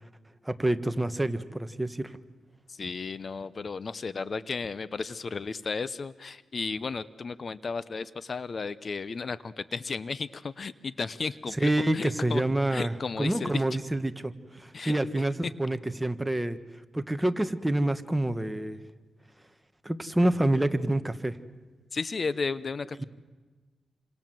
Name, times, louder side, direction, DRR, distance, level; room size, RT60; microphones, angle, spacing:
voice 1, 0.4-2.2 11.6-16.6 16.9-18.8 19.8-21.4 23.0-23.1, right 1 dB, 10° right, 9 dB, 1.5 m, -27 dB
voice 2, 2.7-12.4 12.7-13.6 14.7-15.2 21.9-23.0, left 4 dB, 45° left, 16 dB, 0.8 m, -34 dB
28.5 x 26.0 x 7.8 m, 1.3 s
cardioid pair, 85°, 0 cm